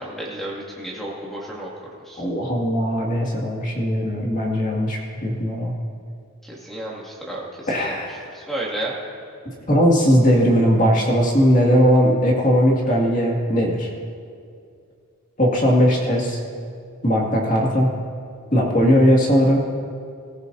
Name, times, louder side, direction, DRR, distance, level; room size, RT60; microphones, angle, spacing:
voice 1, 0.0-1.7 2.1-2.2 6.4-8.0 8.3-8.9, right 1 dB, ahead, -5 dB, 2.3 m, -32 dB
voice 2, 2.2-5.7 7.7-8.3 9.7-13.9 15.4-16.4 17.0-17.9 18.5-19.6, equal, 35° left, -2 dB, 2.2 m, -18 dB
21.0 x 15.0 x 2.7 m, 2.3 s
head